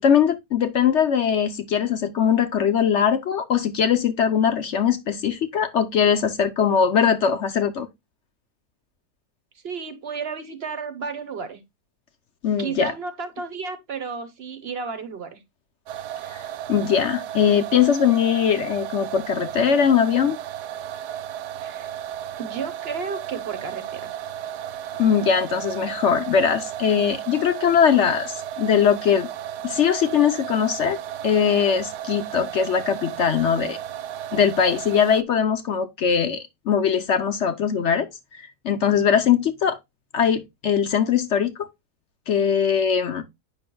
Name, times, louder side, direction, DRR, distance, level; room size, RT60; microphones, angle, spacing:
voice 1, 0.0-7.9 12.4-12.9 16.3-16.4 16.7-20.4 25.0-29.3 29.6-31.0 31.2-33.8 34.3-38.1 38.6-39.8 40.1-41.7 42.3-43.2, left 7 dB, 60° left, 0.8 m, -21 dB
voice 2, 9.6-11.6 12.6-15.4 21.6-21.9 22.4-24.1, right 5 dB, 45° right, 1.0 m, -32 dB
sound 1, 15.9-35.2, right 11 dB, 80° right, 1.1 m, -34 dB
8.9 x 5.6 x 2.2 m
omnidirectional pair, 1.7 m